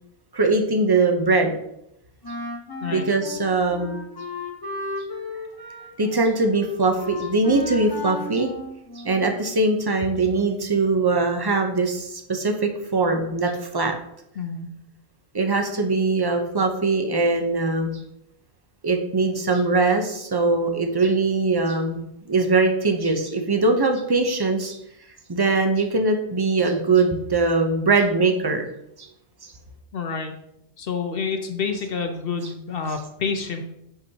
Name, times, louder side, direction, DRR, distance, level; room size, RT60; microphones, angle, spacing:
voice 1, 0.3-1.5 2.9-4.0 6.0-8.5 9.0-13.9 15.3-18.0 18.8-24.8 25.3-28.7 29.0-29.1 29.4-29.5, right 3 dB, 25° right, 5 dB, 0.6 m, -21 dB
Wind instrument woodwind instrument, 2.2-9.4, left 2 dB, 20° left, 1.2 m, -35 dB
voice 2, 14.4-14.7 29.9-30.3 30.8-33.6, left 5 dB, 55° left, 5 dB, 0.9 m, -28 dB
8.1 x 6.0 x 2.9 m, 0.80 s
omnidirectional pair, 1.3 m